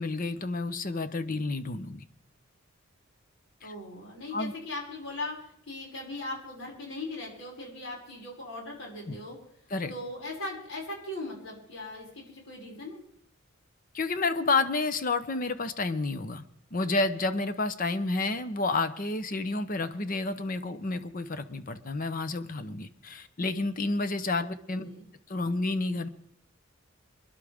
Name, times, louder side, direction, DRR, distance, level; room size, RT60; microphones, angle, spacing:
voice 1, 0.0-2.0 3.6-3.7 4.3-4.5 9.1-9.2 9.7-9.9 13.9-16.4 16.7-24.9 25.3-26.1, left 3 dB, 40° left, 11 dB, 0.8 m, -30 dB
voice 2, 3.6-9.4 9.9-13.0 24.4-25.0, left 2 dB, 75° left, -3 dB, 6.1 m, -39 dB
26.0 x 11.5 x 3.6 m, 0.69 s
head